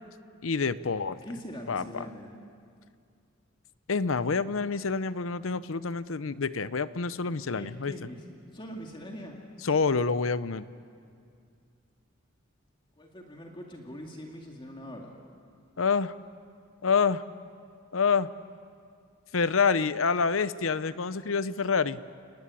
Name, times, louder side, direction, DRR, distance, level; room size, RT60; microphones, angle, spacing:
voice 1, 0.4-1.2 1.7-2.1 3.9-7.9 9.6-10.7 15.8-16.1 16.8-17.2 17.9-18.3 19.3-22.0, left 5 dB, 75° left, 15 dB, 0.8 m, -27 dB
voice 2, 1.2-2.3 7.6-8.2 8.5-9.4 13.0-15.2, equal, 25° left, 0 dB, 2.3 m, -42 dB
29.5 x 20.0 x 8.5 m, 2.3 s
head